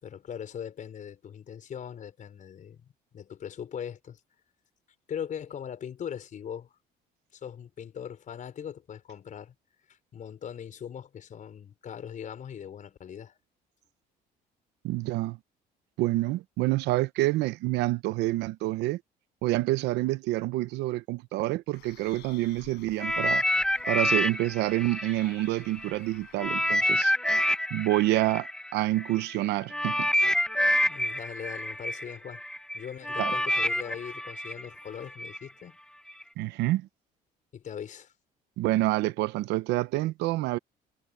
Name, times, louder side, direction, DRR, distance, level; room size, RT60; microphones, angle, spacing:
voice 1, 0.0-2.8 3.1-4.2 5.1-6.7 7.3-9.5 9.9-13.4 30.9-32.4 32.7-35.8 37.5-38.1, left 8 dB, 50° left, 5.2 m, -40 dB
voice 2, 14.8-15.4 16.0-19.0 19.4-23.4 23.9-27.1 27.7-30.1 33.2-33.3 36.4-36.9 38.6-40.6, right 17 dB, 90° right, 0.9 m, -27 dB
Bird, 21.7-27.1, left 17 dB, 85° left, 7.8 m, -54 dB
sound 1, 23.0-25.9 26.4-35.4 36.1-36.2, left 1 dB, 5° left, 1.0 m, -28 dB
cardioid pair, 110°, 17 cm